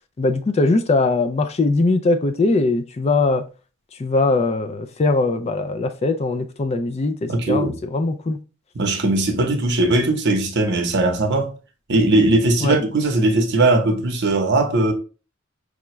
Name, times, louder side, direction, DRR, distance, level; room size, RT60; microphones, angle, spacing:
voice 1, 0.2-3.4 4.0-8.4 12.6-12.8, left 3 dB, 30° left, 0.4 m, -20 dB
voice 2, 7.3-7.8 8.7-11.5 11.9-14.9, right 2 dB, 55° right, 0.8 m, -19 dB
4.9 x 2.3 x 3.0 m
head